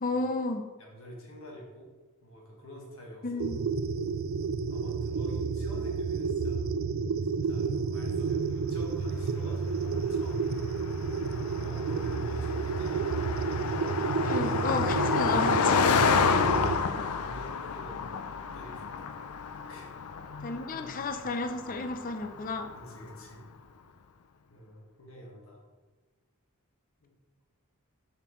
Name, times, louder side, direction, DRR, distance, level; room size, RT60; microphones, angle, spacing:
voice 1, 0.0-0.7 3.2-3.6 14.2-15.9 20.4-22.7, left 3 dB, 40° left, 7 dB, 0.6 m, -32 dB
voice 2, 0.8-1.9 2.2-3.8 4.7-6.6 7.3-10.6 11.6-13.3 16.2-19.1 19.7-19.9 20.4-20.6 22.7-23.4 24.5-25.6 27.0-27.1, equal, 65° left, -2 dB, 1.6 m, -47 dB
sound 1, 3.4-16.8, right 5 dB, 60° right, 0.3 m, -30 dB
Car passing by, 9.4-23.1, left 6 dB, 85° left, 0.5 m, -30 dB
7.3 x 5.9 x 3.1 m, 1.3 s
head